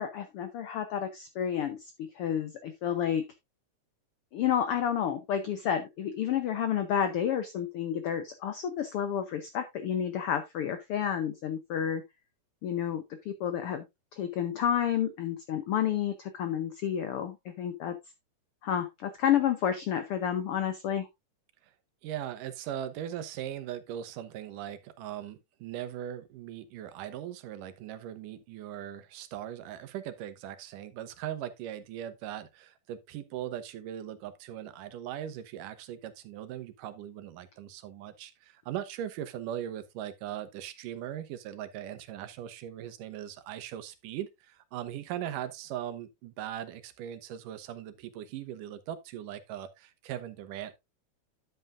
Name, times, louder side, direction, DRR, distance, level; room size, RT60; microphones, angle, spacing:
voice 1, 0.0-3.3 4.3-12.0 12.6-13.8 14.1-18.0 18.6-21.1, left 9 dB, 90° left, 1.2 m, -30 dB
voice 2, 22.0-50.8, right 11 dB, 90° right, 2.5 m, -39 dB
10.5 x 7.9 x 2.5 m
omnidirectional pair, 3.6 m